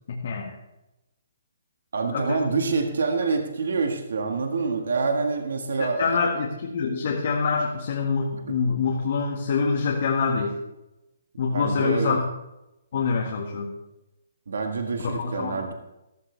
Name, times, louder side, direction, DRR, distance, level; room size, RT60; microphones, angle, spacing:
voice 1, 0.1-0.6 2.1-2.4 5.8-10.6 11.4-12.3 12.9-13.7 15.0-15.6, left 5 dB, 50° left, -1 dB, 1.7 m, -25 dB
voice 2, 1.9-6.2 11.5-12.2 14.5-15.7, right 4 dB, 80° right, 4 dB, 1.7 m, -26 dB
14.5 x 13.5 x 3.4 m, 0.94 s
hypercardioid pair, 170°, 0 cm